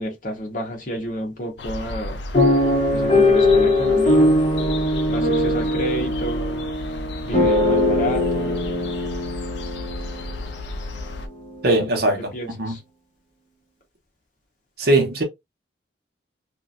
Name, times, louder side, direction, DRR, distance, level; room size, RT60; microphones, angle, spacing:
voice 1, 0.0-2.2 2.9-4.3 5.1-6.6 7.2-8.6 11.7-11.9 12.3-12.8, equal, 45° left, 1.0 m, -30 dB
sound 1, 1.6-11.3, left 2 dB, 70° left, 0.5 m, -33 dB
sound 2, 2.3-10.4 11.0-11.1 11.4-11.7, left 1 dB, 30° left, 1.6 m, -20 dB
voice 2, 11.6-12.8 14.8-15.2, right 1 dB, 60° right, 0.9 m, -20 dB
3.1 x 2.5 x 2.4 m
head